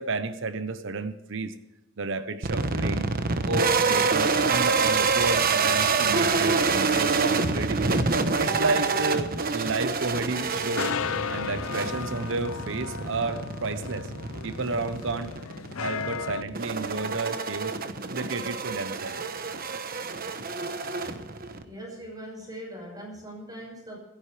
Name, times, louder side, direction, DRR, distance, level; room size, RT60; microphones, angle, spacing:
voice 1, 0.0-1.5 2.0-3.1 3.4-8.0 8.4-10.9 11.3-14.1 14.4-15.3 15.7-17.8 18.1-19.2, right 3 dB, 65° right, 11 dB, 1.0 m, -31 dB
sound 1, 2.4-21.6, right 4 dB, 45° right, 1.1 m, -27 dB
sound 2, 10.4-16.4, left 6 dB, 75° left, 0.5 m, -35 dB
voice 2, 21.6-24.0, right 1 dB, 20° right, -1 dB, 6.0 m, -41 dB
26.0 x 10.5 x 3.4 m, 0.98 s
head